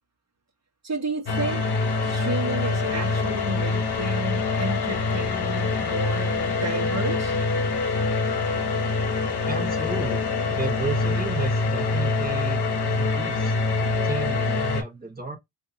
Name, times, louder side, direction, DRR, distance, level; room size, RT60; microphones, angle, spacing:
voice 1, 0.8-1.6 2.0-7.4, right 2 dB, 40° right, 1.3 m, -32 dB
sound 1, 1.3-14.8, left 3 dB, 70° left, 0.8 m, -25 dB
voice 2, 9.4-12.6 12.9-15.4, right 3 dB, 20° right, 1.1 m, -33 dB
3.5 x 2.7 x 2.8 m
wide cardioid pair, 150°, 41 cm